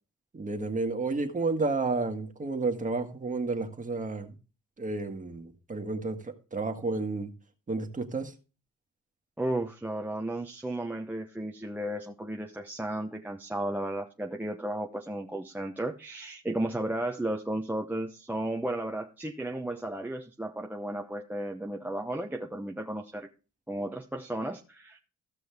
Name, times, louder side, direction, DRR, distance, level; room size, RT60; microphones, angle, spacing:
voice 1, 0.3-4.3 4.8-7.3 7.7-8.3, right 3 dB, 25° right, 1.6 m, -31 dB
voice 2, 9.4-23.3 23.7-25.0, right 1 dB, 5° right, 0.8 m, -34 dB
15.0 x 6.1 x 3.5 m
cardioid pair, 90°, 30 cm